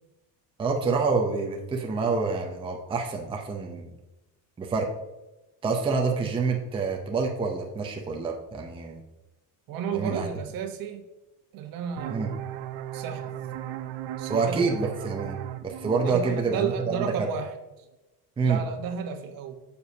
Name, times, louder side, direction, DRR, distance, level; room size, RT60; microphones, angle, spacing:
voice 1, 0.6-3.9 4.6-4.9 5.6-9.0 9.9-10.3 12.1-12.3 14.3-17.3 18.4-18.6, right 4 dB, 15° right, 1 dB, 0.6 m, -27 dB
voice 2, 9.7-11.0 11.5-12.4 12.9-13.4 14.2-14.7 16.0-17.5 18.4-19.5, right 7 dB, 55° right, 6 dB, 1.1 m, -32 dB
sound 1, 12.0-17.4, right 12 dB, 85° right, 0.7 m, -37 dB
9.1 x 6.9 x 2.8 m, 1.0 s
cardioid pair, 175°, 40 cm